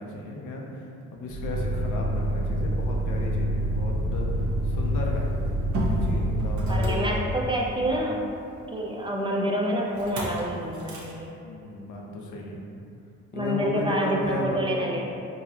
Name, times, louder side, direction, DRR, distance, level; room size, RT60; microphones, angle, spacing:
voice 1, 0.0-5.3 6.0-7.3 11.4-12.6 13.3-14.8, left 1 dB, 80° left, -1 dB, 0.6 m, -35 dB
Motor vehicle (road), 1.3-7.7 10.0-10.4 10.7-11.1, equal, 70° right, 0.8 m, -27 dB
voice 2, 6.7-8.2 8.7-11.3 13.3-15.0, equal, 15° right, -2 dB, 0.4 m, -27 dB
3.8 x 2.7 x 2.8 m, 2.6 s
cardioid pair, 90°, 30 cm